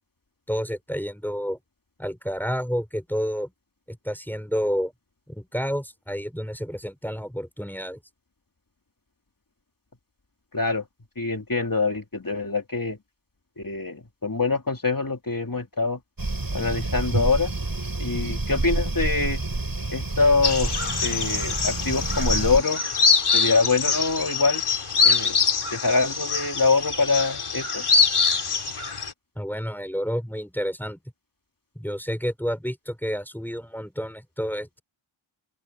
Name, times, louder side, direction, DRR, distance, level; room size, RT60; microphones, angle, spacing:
voice 1, 0.5-1.6 2.0-3.5 3.9-4.9 5.3-8.0 29.4-31.0 31.8-34.8, equal, 5° left, 5.5 m, -30 dB
voice 2, 10.5-10.8 11.2-13.0 13.6-16.0 16.5-17.5 18.0-19.4 19.9-22.8 23.3-24.6 25.0-25.4 25.7-27.8, left 3 dB, 40° left, 3.2 m, -24 dB
sound 1, 16.2-22.6, right 2 dB, 45° right, 7.6 m, -28 dB
sound 2, 20.4-29.1, left 5 dB, 90° left, 3.2 m, -24 dB
open air
wide cardioid pair, 45°, 49 cm